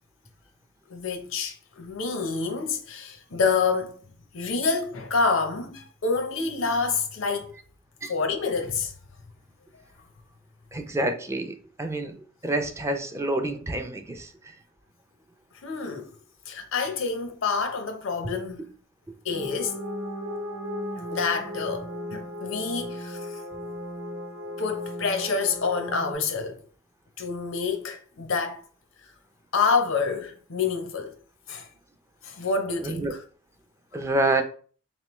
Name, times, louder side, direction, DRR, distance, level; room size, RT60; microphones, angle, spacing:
voice 1, 0.9-4.0 4.3-7.6 8.1-8.9 15.6-16.2 16.5-18.7 19.2-19.8 21.1-23.4 24.6-26.6 27.2-28.6 29.0-29.1 29.5-31.1 31.5-31.7 32.2-33.2, left 4 dB, 85° left, 0.7 m, -27 dB
voice 2, 10.7-12.1 12.4-14.3 32.8-33.1 33.9-34.4, right 2 dB, 15° right, 0.4 m, -27 dB
sound 1, 19.3-26.1, left 1 dB, 80° right, 0.8 m, -36 dB
3.6 x 3.1 x 3.0 m
head